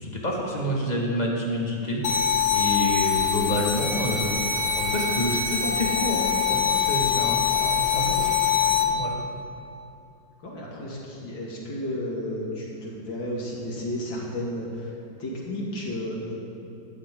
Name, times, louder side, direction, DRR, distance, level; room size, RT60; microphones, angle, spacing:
voice 1, 0.0-2.0 2.5-9.1, equal, 20° left, -3 dB, 2.1 m, -28 dB
sound 1, 2.0-8.8, left 7 dB, 55° left, 1.3 m, -24 dB
voice 2, 10.4-14.9 15.2-16.4, left 1 dB, 75° left, -3 dB, 3.2 m, -32 dB
16.5 x 12.5 x 3.9 m, 2.8 s
omnidirectional pair, 2.1 m